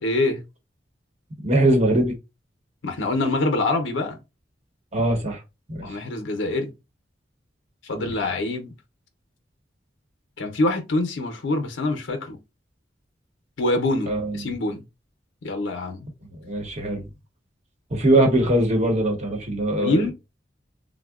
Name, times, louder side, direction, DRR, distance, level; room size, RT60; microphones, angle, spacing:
voice 1, 0.0-0.4 2.8-4.2 5.8-6.7 7.8-8.7 10.4-12.4 13.6-14.8 15.4-16.1 18.1-18.2 19.8-20.1, left 2 dB, 90° left, 0.6 m, -25 dB
voice 2, 1.4-2.2 4.9-5.4 5.7-6.0 8.0-8.1 14.1-14.4 16.4-17.1 17.9-20.1, right 1 dB, 35° right, 0.9 m, -21 dB
3.6 x 2.1 x 2.3 m
head